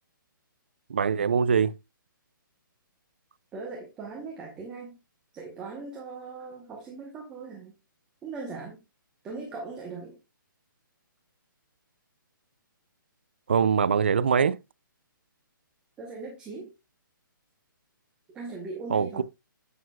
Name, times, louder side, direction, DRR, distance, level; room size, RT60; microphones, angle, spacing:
voice 1, 0.9-1.7 13.5-14.6 18.9-19.2, right 6 dB, 30° right, 0.3 m, -23 dB
voice 2, 3.5-5.0 5.3-7.8 8.2-8.8 9.2-10.2 16.0-16.7 18.3-19.2, right 4 dB, 5° right, 0.9 m, -39 dB
8.9 x 8.3 x 2.3 m
hypercardioid pair, 180°, 11 cm